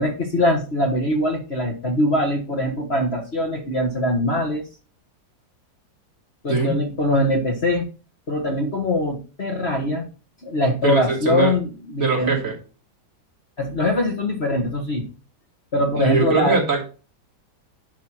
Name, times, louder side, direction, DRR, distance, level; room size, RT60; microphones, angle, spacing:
voice 1, 0.0-4.6 6.4-7.8 8.3-10.1 10.4-12.4 13.6-15.1 15.7-16.6, left 1 dB, 35° left, 2 dB, 1.6 m, -22 dB
voice 2, 10.8-11.5 12.0-12.5 15.9-16.8, right 4 dB, 45° right, -3 dB, 3.4 m, -21 dB
11.0 x 5.8 x 4.4 m, 0.35 s
omnidirectional pair, 2.0 m